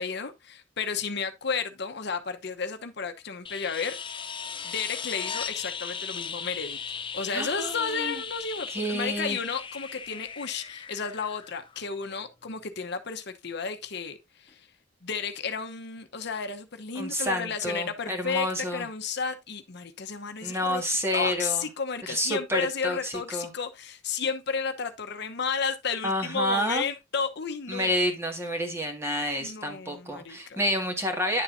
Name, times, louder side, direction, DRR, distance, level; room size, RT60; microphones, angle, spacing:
voice 1, 0.0-4.2 4.6-6.8 7.1-14.7 15.0-20.8 21.1-27.9 29.4-30.6, left 5 dB, 60° left, 1.0 m, -32 dB
sound 1, 3.4-12.1 14.5-14.6, left 6 dB, 25° left, 0.6 m, -37 dB
voice 2, 7.3-8.2 8.7-9.4 17.0-18.9 20.4-21.7 22.1-23.5 26.0-26.8 27.7-31.4, equal, 15° right, 2.0 m, -29 dB
10.0 x 7.1 x 2.7 m
head